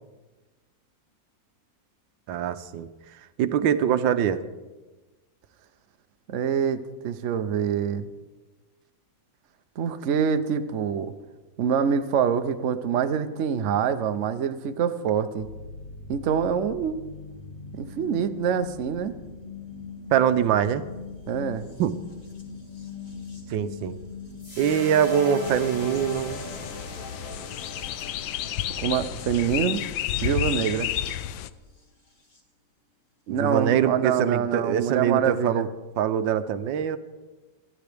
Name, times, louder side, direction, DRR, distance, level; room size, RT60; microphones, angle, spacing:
voice 1, 2.3-2.9 3.4-4.4 20.1-20.8 21.8-21.9 23.5-23.9 24.6-26.5 33.3-35.7 36.0-37.0, right 9 dB, 80° right, 11 dB, 1.4 m, -23 dB
voice 2, 6.3-8.1 9.8-11.1 11.6-15.5 16.1-17.0 17.8-19.2 21.3-21.7 28.8-29.8 30.2-30.9 33.3-35.7, right 7 dB, 60° right, 9 dB, 0.8 m, -25 dB
sound 1, 15.4-32.4 33.6-33.7, left 5 dB, 35° left, 2.3 m, -42 dB
sound 2, 24.4-30.8, left 2 dB, 65° left, 6.8 m, -40 dB
sound 3, 25.4-31.5, left 12 dB, 80° left, 1.3 m, -31 dB
28.0 x 10.5 x 3.4 m, 1.2 s
omnidirectional pair, 2.1 m